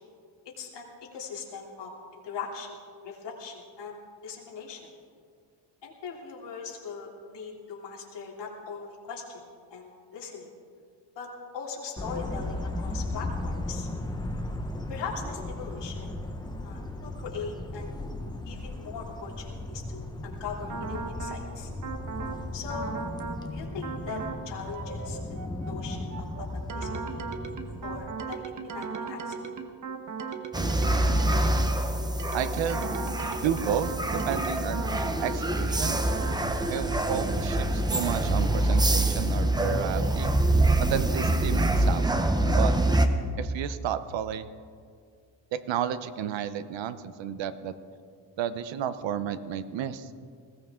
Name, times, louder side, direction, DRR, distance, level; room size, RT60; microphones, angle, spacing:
voice 1, 0.6-2.7 3.0-4.8 5.8-9.4 9.7-10.5 11.1-11.3 11.5-13.9 14.9-16.2 16.6-17.9 18.5-21.7 22.5-22.9 23.5-27.3 27.8-29.4, left 5 dB, 65° left, -3 dB, 3.2 m, -40 dB
sound 1, 12.0-28.0, left 1 dB, 10° left, 1.0 m, -36 dB
sound 2, 20.7-21.4 21.8-22.4 22.7-23.4 23.8-24.4 24.7-31.8 32.2-35.4 35.8-36.4, right 5 dB, 40° right, 1.2 m, -37 dB
sound 3, 30.5-43.1, right 1 dB, 10° right, 0.7 m, -25 dB
voice 2, 32.3-32.9 33.4-34.9 35.2-36.0 36.7-40.3 40.8-42.7 43.4-44.5 45.5-47.7 48.4-50.1, right 9 dB, 75° right, 12 dB, 0.9 m, -32 dB
20.5 x 17.0 x 3.7 m, 2.2 s
cardioid pair, 165°, 45 cm